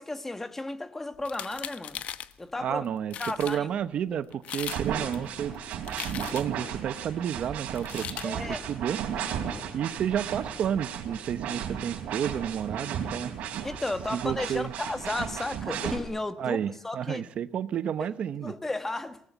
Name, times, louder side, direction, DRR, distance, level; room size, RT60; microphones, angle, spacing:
voice 1, 0.0-2.0 2.4-2.9 3.2-3.7 8.2-8.6 13.6-17.3 18.4-19.2, left 2 dB, 15° left, 1.4 m, -34 dB
sound 1, 1.2-2.3 2.8-2.9 3.1-3.6 4.3-4.8 5.1-6.6 7.7-8.3, left 10 dB, 70° left, 1.1 m, -38 dB
voice 2, 2.6-5.6 6.1-9.0 9.7-13.3 14.1-14.7 16.4-18.5, right 9 dB, 60° right, 0.9 m, -31 dB
sound 2, 4.6-16.0, right 8 dB, 90° right, 3.6 m, -35 dB
23.5 x 19.5 x 8.2 m
cardioid pair, 135°, 2 cm